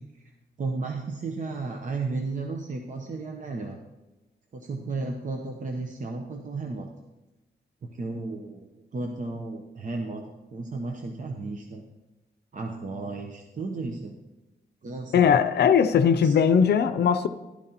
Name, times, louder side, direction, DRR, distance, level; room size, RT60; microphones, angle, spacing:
voice 1, 0.6-3.8 4.5-6.9 7.8-8.7 8.9-11.8 12.5-14.2 14.8-15.3 16.2-16.3, right 3 dB, 50° right, 3 dB, 0.8 m, -33 dB
voice 2, 15.1-17.3, left 7 dB, 90° left, 11 dB, 0.5 m, -19 dB
12.5 x 11.5 x 2.9 m, 1.1 s
wide cardioid pair, 120°, 17 cm